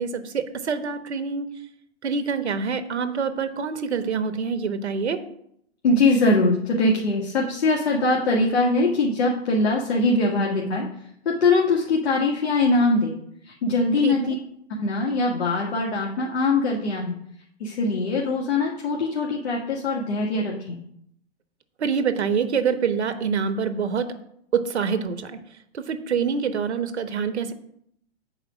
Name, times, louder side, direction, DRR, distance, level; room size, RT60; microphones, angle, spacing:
voice 1, 0.0-1.5 2.0-5.2 14.0-14.3 21.8-24.1 24.5-25.4 25.7-27.5, right 6 dB, 85° right, 9 dB, 1.1 m, -26 dB
voice 2, 5.8-10.9 11.3-13.1 13.4-14.3 14.8-17.1 17.6-20.8, left 2 dB, 70° left, -2 dB, 1.8 m, -22 dB
8.9 x 4.8 x 6.2 m, 0.72 s
hypercardioid pair, 140°, 33 cm